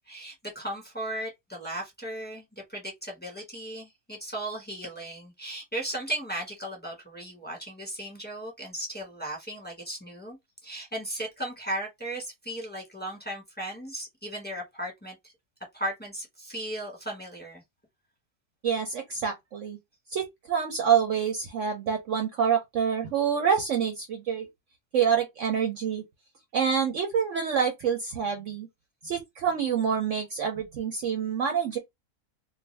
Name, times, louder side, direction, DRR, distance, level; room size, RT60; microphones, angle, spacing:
voice 1, 0.1-15.3 15.7-17.6, right 1 dB, 5° left, 1.1 m, -36 dB
voice 2, 18.6-19.8 20.1-24.5 24.9-26.0 26.5-28.7 29.0-31.8, right 7 dB, 65° right, 0.9 m, -27 dB
2.5 x 2.5 x 3.2 m
omnidirectional pair, 1.6 m